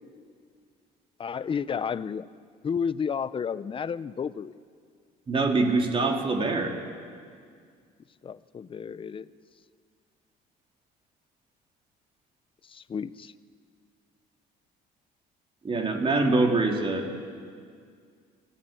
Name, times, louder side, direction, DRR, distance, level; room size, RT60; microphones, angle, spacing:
voice 1, 1.2-2.2 2.6-4.5 8.2-9.3 12.7-13.3, left 6 dB, 30° left, 16 dB, 0.6 m, -31 dB
voice 2, 5.3-6.7 15.6-17.1, right 3 dB, 30° right, 2 dB, 3.1 m, -24 dB
25.0 x 15.5 x 9.0 m, 2.1 s
cardioid pair, 110°, 17 cm